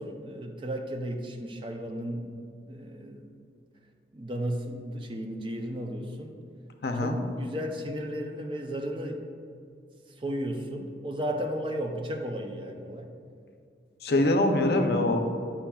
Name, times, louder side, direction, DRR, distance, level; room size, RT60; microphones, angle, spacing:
voice 1, 0.0-2.4 2.7-3.3 4.1-6.3 7.0-9.2 10.2-13.1 14.1-14.4, equal, 30° right, 3 dB, 0.4 m, -34 dB
voice 2, 6.8-7.2 14.0-15.3, left 1 dB, 65° left, 5 dB, 0.5 m, -24 dB
8.5 x 5.5 x 2.3 m, 2.4 s
head